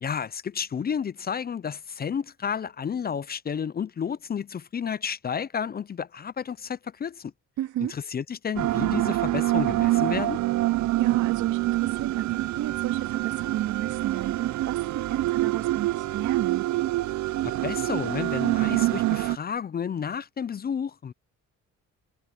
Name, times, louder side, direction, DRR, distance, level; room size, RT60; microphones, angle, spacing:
voice 1, 0.0-7.3 7.9-10.4 17.4-21.1, left 7 dB, 30° left, 0.5 m, -31 dB
voice 2, 7.6-8.0 11.0-16.7, right 13 dB, 85° right, 2.3 m, -32 dB
sound 1, 8.6-19.4, right 16 dB, 70° right, 0.6 m, -26 dB
cardioid pair, 90°, 30 cm